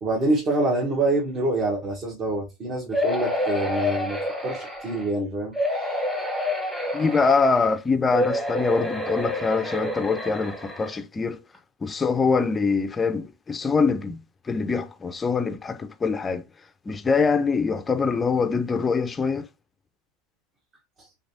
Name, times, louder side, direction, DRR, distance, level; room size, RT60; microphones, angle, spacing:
voice 1, 0.0-6.0 21.0-21.1, right 2 dB, 40° right, 1.1 m, -26 dB
sound 1, 2.9-5.1 5.5-7.7 8.1-11.0 11.5-11.6 11.9-12.0, left 1 dB, 5° right, 1.0 m, -28 dB
voice 2, 6.9-11.4 11.8-16.4 16.9-19.5, left 4 dB, 20° left, 0.4 m, -24 dB
3.4 x 3.3 x 2.7 m
supercardioid pair, 125°, 0 cm